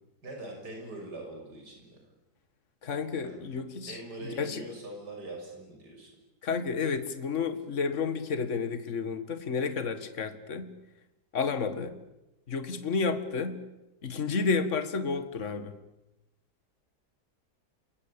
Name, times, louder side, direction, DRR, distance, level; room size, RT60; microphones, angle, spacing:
voice 1, 0.2-2.0 3.2-3.4 3.9-6.1, right 2 dB, 75° right, 1 dB, 7.1 m, -42 dB
voice 2, 2.8-4.0 4.4-4.6 6.4-10.7 11.3-12.0 12.5-13.6 14.0-15.8, left 5 dB, 45° left, 10 dB, 2.1 m, -31 dB
28.0 x 23.5 x 8.7 m, 0.98 s
omnidirectional pair, 1.8 m